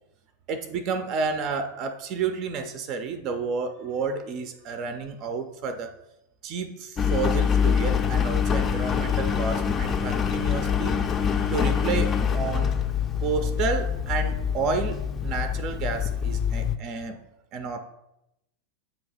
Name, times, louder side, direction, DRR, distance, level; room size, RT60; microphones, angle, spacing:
voice 1, 0.5-5.9 6.4-10.9 11.5-12.8 13.2-17.3 17.5-17.8, right 5 dB, 40° right, 9 dB, 0.5 m, -30 dB
Engine, 7.0-16.8, left 7 dB, 25° left, 0.5 m, -25 dB
7.6 x 3.0 x 5.2 m, 0.86 s
figure-of-eight pair, 90°, 0 cm